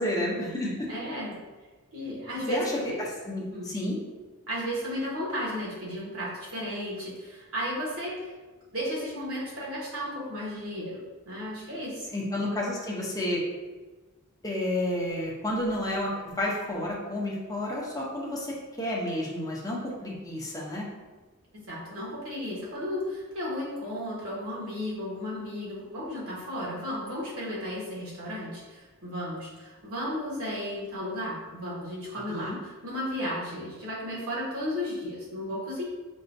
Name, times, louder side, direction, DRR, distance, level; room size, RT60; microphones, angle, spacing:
voice 1, 0.0-0.9 2.5-4.0 12.1-13.4 14.4-18.5 18.8-20.9 32.3-32.6, left 1 dB, 15° left, -4 dB, 0.7 m, -30 dB
voice 2, 0.9-1.4 1.9-3.0 3.5-3.7 4.5-8.3 8.7-12.1 21.5-35.8, equal, 70° right, -6 dB, 1.3 m, -34 dB
5.2 x 2.4 x 2.6 m, 1.3 s
head